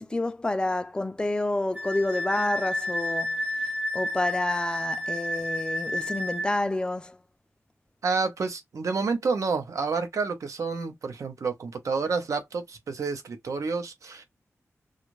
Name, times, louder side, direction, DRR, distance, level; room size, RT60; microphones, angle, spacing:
voice 1, 0.0-7.2, left 2 dB, 15° left, 0.4 m, -29 dB
Wind instrument woodwind instrument, 1.7-6.5, left 1 dB, 30° right, 0.8 m, -30 dB
voice 2, 8.0-14.2, right 4 dB, 80° right, 0.7 m, -29 dB
2.5 x 2.4 x 3.0 m
wide cardioid pair, 115°, 5 cm